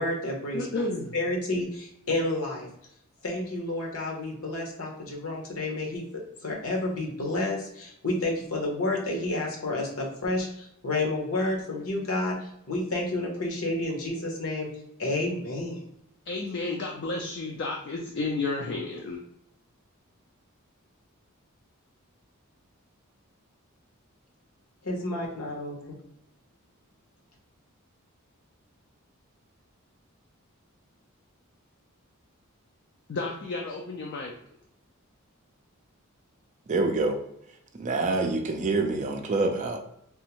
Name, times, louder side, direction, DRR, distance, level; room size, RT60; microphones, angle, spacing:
voice 1, 0.0-0.6 1.1-2.7 3.2-12.4 12.7-14.7 15.0-15.8 24.8-26.0, left 2 dB, 75° left, -1 dB, 0.9 m, -30 dB
voice 2, 0.5-1.1 16.3-19.2 33.1-34.4, left 3 dB, 55° left, 1 dB, 0.4 m, -32 dB
voice 3, 36.7-37.2 37.7-39.8, right 3 dB, 35° right, 4 dB, 0.4 m, -26 dB
3.5 x 2.0 x 2.8 m, 0.74 s
head